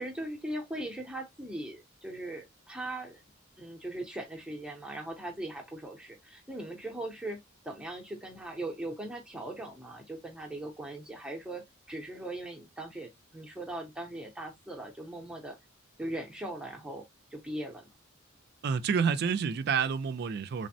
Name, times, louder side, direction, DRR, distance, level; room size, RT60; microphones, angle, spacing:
voice 1, 0.0-3.2 3.6-15.6 16.0-17.0 17.3-17.8, right 1 dB, 5° right, 0.6 m, -39 dB
voice 2, 18.6-20.7, right 6 dB, 50° right, 0.3 m, -29 dB
3.3 x 2.1 x 2.6 m
head